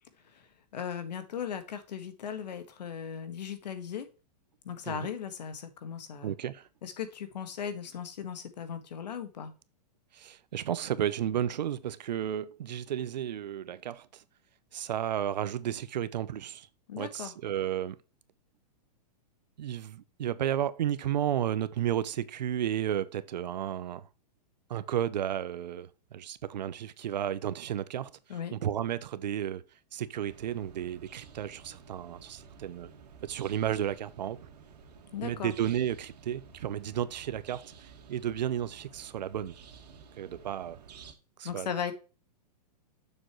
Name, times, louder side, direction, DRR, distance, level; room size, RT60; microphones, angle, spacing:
voice 1, 0.2-4.1 4.6-6.3 6.8-9.5 16.9-17.3 28.3-28.6 35.1-35.5 41.4-41.9, left 8 dB, 75° left, 1.8 m, -37 dB
voice 2, 6.2-6.7 10.1-14.2 14.7-16.7 17.0-18.0 19.6-24.1 24.7-28.1 28.5-29.6 29.9-32.9 33.2-34.4 35.2-39.6 40.2-40.8 41.4-41.7, right 10 dB, 90° right, 0.8 m, -33 dB
sound 1, 30.2-41.1, right 6 dB, 70° right, 2.0 m, -52 dB
7.0 x 6.4 x 3.2 m
supercardioid pair, 175°, 21 cm